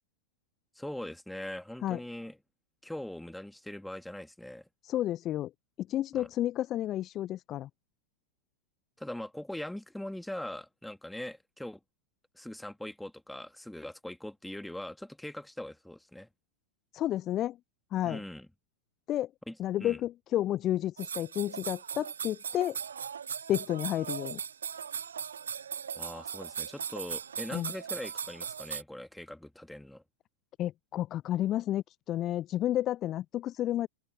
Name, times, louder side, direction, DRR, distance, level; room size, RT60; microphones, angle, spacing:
voice 1, 0.7-2.4 2.8-4.7 6.1-6.3 9.0-11.8 12.3-16.3 18.0-18.5 19.5-20.0 26.0-30.0, left 1 dB, 5° left, 2.6 m, -41 dB
voice 2, 4.8-5.5 5.8-7.7 16.9-17.6 17.9-18.2 19.1-19.3 19.6-22.8 23.5-24.4 27.5-27.7 30.6-33.9, left 13 dB, 30° left, 0.4 m, -31 dB
sound 1, 21.0-28.8, right 7 dB, 70° right, 1.2 m, -38 dB
open air
figure-of-eight pair, 90°, 0 cm